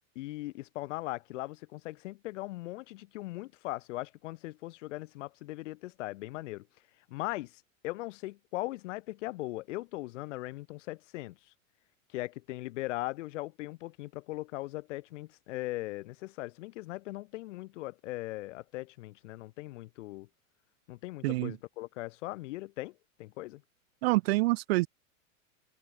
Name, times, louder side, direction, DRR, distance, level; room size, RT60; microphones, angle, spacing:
voice 1, 0.2-6.7 7.1-11.4 12.1-20.3 20.9-23.6, left 19 dB, 60° left, 4.0 m, -39 dB
voice 2, 21.2-21.6 24.0-24.9, right 21 dB, 50° right, 0.4 m, -26 dB
open air
supercardioid pair, 155°, 41 cm